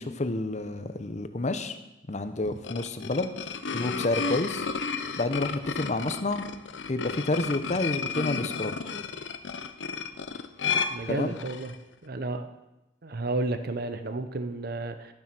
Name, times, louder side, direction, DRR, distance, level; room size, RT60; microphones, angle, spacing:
voice 1, 0.0-1.7 2.1-3.3 3.7-4.7 5.2-6.4 6.9-8.7 11.1-11.3, left 2 dB, 40° left, 10 dB, 0.7 m, -29 dB
sound 1, 2.4-11.7, left 5 dB, 70° left, 0.7 m, -33 dB
voice 2, 10.9-11.7 12.0-12.5 13.0-15.1, right 2 dB, 55° right, 9 dB, 0.7 m, -32 dB
12.0 x 7.4 x 6.0 m, 0.97 s
head